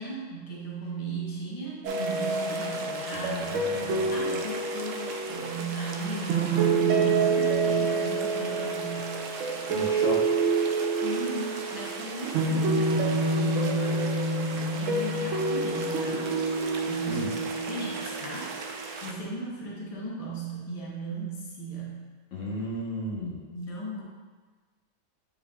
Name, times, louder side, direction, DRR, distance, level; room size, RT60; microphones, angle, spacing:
voice 1, 0.0-9.2 11.0-16.3 16.9-22.0 23.5-24.0, right 3 dB, 30° left, -4 dB, 1.1 m, -37 dB
sound 1, 1.8-19.1, right 3 dB, 90° right, 1.0 m, -27 dB
voice 2, 3.1-4.5 9.7-10.4 17.1-17.3 22.3-23.4, left 1 dB, 75° left, -4 dB, 1.5 m, -35 dB
9.4 x 4.4 x 2.3 m, 1.4 s
omnidirectional pair, 1.3 m